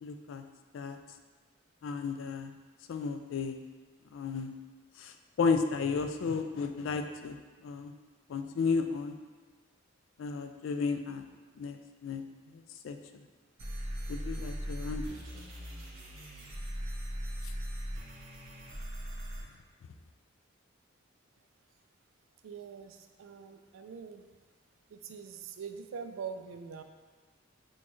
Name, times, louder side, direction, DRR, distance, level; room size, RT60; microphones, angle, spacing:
voice 1, 0.0-0.4 0.7-1.0 1.8-2.5 2.9-3.6 4.1-4.5 5.0-5.1 5.4-7.4 7.6-7.9 8.3-9.2 10.2-11.3 11.6-12.2 12.5-13.0 14.1-15.4, left 5 dB, 70° left, 7 dB, 0.3 m, -33 dB
sound 1, 13.6-19.4, equal, 90° right, 1.2 m, -39 dB
voice 2, 22.4-24.3 24.9-26.8, right 6 dB, 75° right, 7 dB, 0.3 m, -43 dB
6.1 x 2.3 x 3.0 m, 1.4 s
head